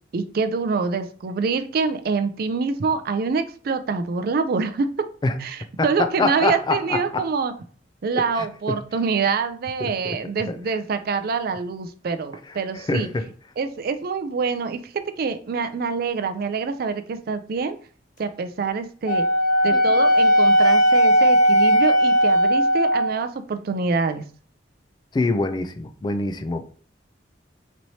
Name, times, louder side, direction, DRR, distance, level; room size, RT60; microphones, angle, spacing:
voice 1, 0.1-4.9 5.4-7.5 8.0-13.1 13.6-14.8 15.2-17.8 18.2-19.2 19.6-24.2, right 5 dB, 55° right, 0.4 m, -25 dB
voice 2, 5.8-7.2 8.4-8.8 9.8-10.2 10.5-10.6 12.7-13.3 19.7-19.8 25.1-26.6, left 3 dB, 25° left, 0.3 m, -25 dB
Wind instrument woodwind instrument, 19.1-23.2, equal, 45° left, 1.1 m, -17 dB
4.3 x 3.0 x 2.7 m
head